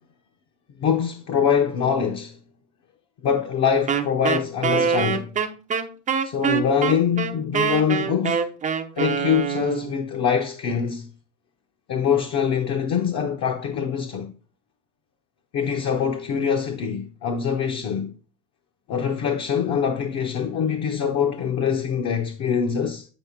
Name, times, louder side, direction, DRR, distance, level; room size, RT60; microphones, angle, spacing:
voice 1, 0.8-2.4 3.2-5.3 6.2-8.5 9.0-11.1 11.9-14.3 15.5-18.1 18.9-23.1, left 7 dB, 35° left, 0.9 m, -24 dB
Wind instrument woodwind instrument, 3.9-9.9, right 7 dB, 15° right, 0.6 m, -24 dB
9.1 x 5.1 x 3.6 m
supercardioid pair, 140°, 45 cm